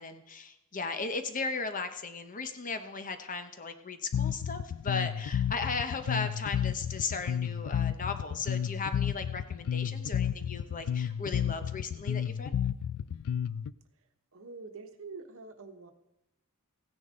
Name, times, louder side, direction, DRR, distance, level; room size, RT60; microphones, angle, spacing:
voice 1, 0.0-12.6, left 4 dB, 35° left, 9 dB, 0.9 m, -36 dB
Bass guitar, 4.1-13.7, left 8 dB, 85° left, 0.4 m, -31 dB
voice 2, 14.3-15.9, right 4 dB, 65° right, 7 dB, 1.1 m, -45 dB
15.5 x 10.0 x 3.8 m, 0.91 s
head